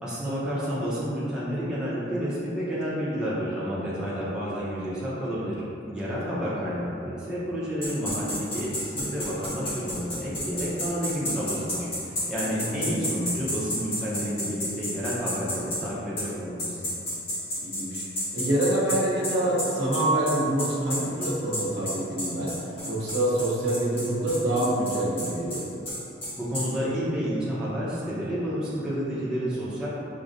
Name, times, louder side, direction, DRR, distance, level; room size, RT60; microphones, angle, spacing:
voice 1, 0.0-16.8 26.3-29.9, equal, 5° right, -10 dB, 0.6 m, -30 dB
sound 1, 7.8-15.8 16.2-16.3 16.6-26.7, equal, 30° left, 0.9 m, -31 dB
voice 2, 17.6-18.1 18.3-22.5 22.8-25.6, right 1 dB, 65° right, -6 dB, 0.8 m, -26 dB
6.1 x 2.1 x 2.6 m, 2.7 s
head